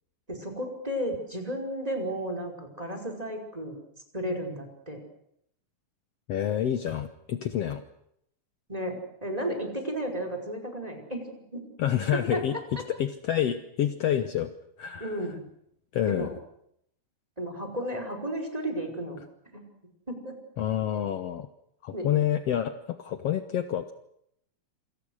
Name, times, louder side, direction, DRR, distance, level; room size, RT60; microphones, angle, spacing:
voice 1, 0.3-3.8 4.1-5.0 8.7-11.7 12.1-12.4 15.0-15.4 16.1-16.3 17.4-19.2 19.5-19.6 20.1-20.4 21.9-22.1, right 1 dB, 10° right, 5 dB, 5.3 m, -33 dB
voice 2, 6.3-7.8 11.8-12.6 13.0-14.5 14.8-15.2 15.9-16.3 20.6-21.5 21.8-23.9, left 10 dB, 65° left, 9 dB, 2.0 m, -28 dB
28.0 x 26.0 x 6.5 m, 0.74 s
omnidirectional pair, 3.4 m